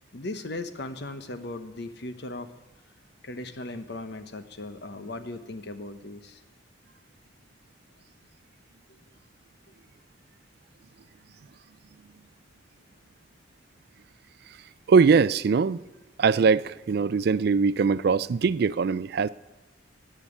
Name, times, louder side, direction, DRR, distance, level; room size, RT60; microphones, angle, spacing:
voice 1, 0.1-2.5 3.2-6.4, left 2 dB, 60° left, 1.0 m, -37 dB
voice 2, 14.9-15.8 16.2-19.3, right 5 dB, 55° right, 0.4 m, -21 dB
16.5 x 5.7 x 10.0 m
head